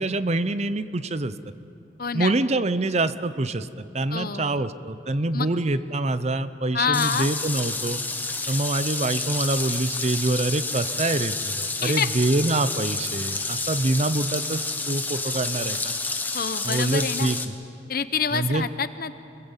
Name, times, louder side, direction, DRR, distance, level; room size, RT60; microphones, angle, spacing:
voice 1, 0.0-1.3 2.1-3.7 3.9-8.0 8.5-15.9 16.6-17.5 18.3-18.7, right 2 dB, 35° right, 13 dB, 0.7 m, -25 dB
voice 2, 2.0-2.3 4.1-4.7 5.3-5.5 6.7-7.3 11.8-12.1 16.3-17.3 17.9-19.1, left 6 dB, 50° left, 12 dB, 0.9 m, -27 dB
sound 1, 6.9-17.5, left 3 dB, 10° left, 1.2 m, -29 dB
26.5 x 21.0 x 8.2 m, 2.7 s
head